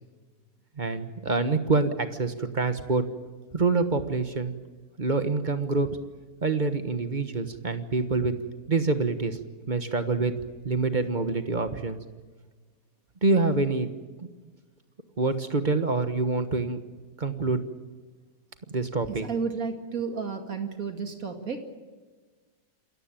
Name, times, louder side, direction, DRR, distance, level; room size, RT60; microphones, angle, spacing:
voice 1, 0.8-3.0 3.5-4.5 5.0-5.9 6.4-8.3 8.7-9.4 9.7-10.3 10.6-12.0 13.2-13.9 14.2-14.3 15.2-16.8 17.2-17.6 18.7-19.3, right 3 dB, 30° right, 9 dB, 1.3 m, -26 dB
voice 2, 19.1-21.6, right 5 dB, 55° right, 5 dB, 2.6 m, -32 dB
27.0 x 14.5 x 9.0 m, 1.4 s
omnidirectional pair, 1.8 m